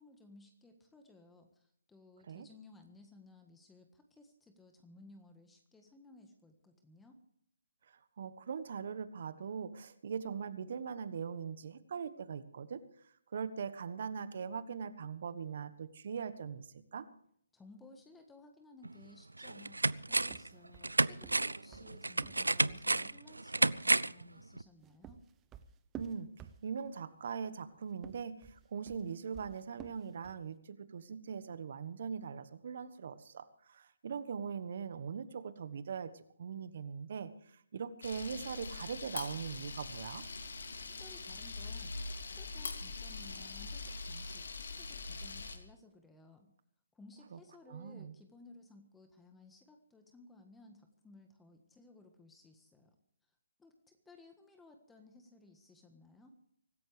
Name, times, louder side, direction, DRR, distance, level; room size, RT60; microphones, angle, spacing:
voice 1, 0.0-7.2 17.5-25.2 40.9-42.0 42.3-46.5 46.9-53.0 53.6-56.3, left 2 dB, 5° left, 5 dB, 1.5 m, -59 dB
voice 2, 8.2-12.8 13.3-17.0 25.9-26.3 26.6-37.3 37.7-40.2 47.3-47.4 47.7-48.1, right 6 dB, 50° right, 13 dB, 1.3 m, -41 dB
sound 1, 18.8-18.9 19.4-20.5 20.8-24.2 24.6-24.7, right 2 dB, 85° right, 0.5 m, -31 dB
sound 2, 20.2-22.9 24.6-27.0 27.9-30.5, right 8 dB, 15° right, 0.9 m, -52 dB
Camera, 38.0-45.6, left 3 dB, 65° left, 2.7 m, -43 dB
24.5 x 14.0 x 3.4 m, 0.67 s
figure-of-eight pair, 145°, 0 cm